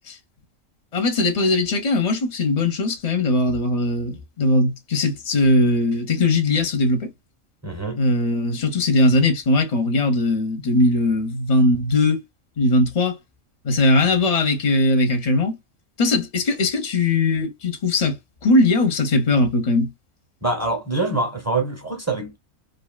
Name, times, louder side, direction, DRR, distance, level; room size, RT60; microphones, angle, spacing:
voice 1, 0.9-7.1 8.0-12.2 12.6-13.2 13.6-15.6 16.0-19.9, left 2 dB, 35° left, 0.7 m, -20 dB
voice 2, 7.6-8.0 20.4-22.4, right 2 dB, 15° right, 0.7 m, -25 dB
2.8 x 2.6 x 2.2 m
omnidirectional pair, 1.4 m